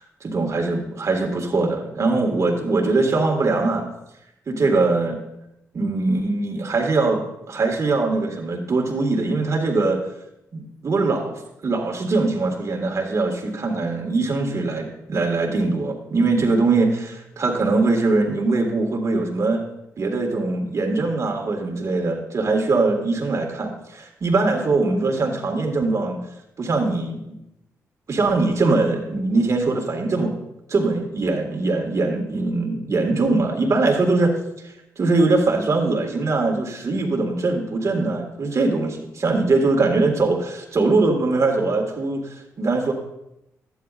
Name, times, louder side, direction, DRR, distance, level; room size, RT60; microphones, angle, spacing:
voice 1, 0.0-3.9 4.5-5.2 5.7-7.2 7.5-10.0 10.5-11.3 11.6-19.6 20.0-26.2 26.6-27.2 28.1-30.3 30.7-34.3 34.6-42.9, right 3 dB, 50° right, 1 dB, 1.8 m, -22 dB
11.5 x 9.4 x 2.5 m, 0.85 s
supercardioid pair, 55°, 6 cm